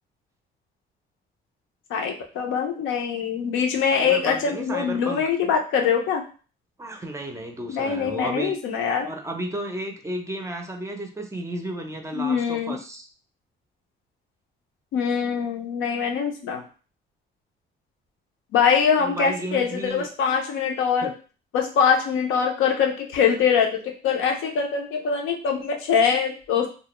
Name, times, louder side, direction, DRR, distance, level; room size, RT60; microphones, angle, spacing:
voice 1, 1.9-6.2 7.7-9.1 12.1-12.8 14.9-16.6 18.5-21.1 21.5-26.7, left 6 dB, 85° left, 2 dB, 0.6 m, -23 dB
voice 2, 3.9-5.2 6.8-13.1 18.9-20.1 21.0-21.1, right 1 dB, 15° right, 3 dB, 0.4 m, -33 dB
2.3 x 2.0 x 2.9 m, 0.37 s
cardioid pair, 90°, 20 cm